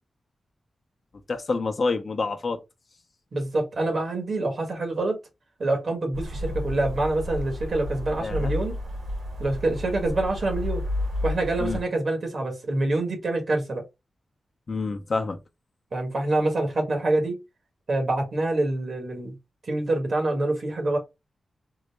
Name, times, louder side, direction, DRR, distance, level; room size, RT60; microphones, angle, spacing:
voice 1, 1.3-2.6 8.2-8.5 11.6-11.8 14.7-15.4, left 4 dB, 50° left, 0.6 m, -27 dB
voice 2, 3.3-5.2 5.6-8.8 9.4-10.8 11.2-13.8 15.9-17.4 17.9-19.3 19.6-21.0, right 2 dB, 55° right, 1.3 m, -26 dB
sound 1, 6.1-11.8, left 1 dB, 80° right, 2.3 m, -31 dB
3.8 x 2.1 x 3.3 m
wide cardioid pair, 100°, 0 cm